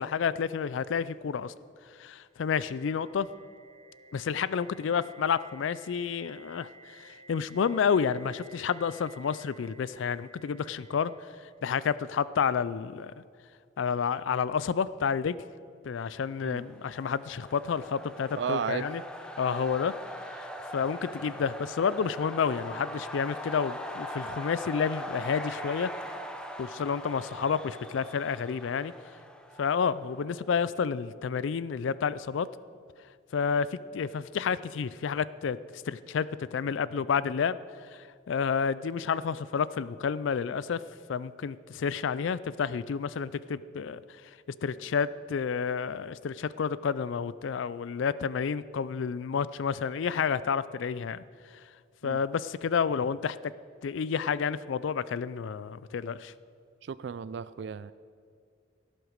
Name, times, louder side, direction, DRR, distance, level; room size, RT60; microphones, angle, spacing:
voice 1, 0.0-1.5 2.0-3.3 4.1-11.1 11.6-13.1 13.8-15.4 15.8-19.0 19.4-19.9 20.3-20.5 20.7-25.9 26.6-28.9 29.6-32.5 33.3-35.6 35.9-37.6 37.9-40.8 41.1-44.0 44.6-51.2 52.0-53.4 53.8-56.3, left 6 dB, 70° left, 17 dB, 0.4 m, -30 dB
sound 1, 2.1-12.0, right 2 dB, 30° right, 0.8 m, -55 dB
sound 2, 16.5-30.2, equal, 5° left, 0.7 m, -41 dB
voice 2, 18.4-18.9 52.0-52.2 56.8-57.9, right 6 dB, 60° right, 15 dB, 0.3 m, -34 dB
17.0 x 7.8 x 6.5 m, 2.2 s
head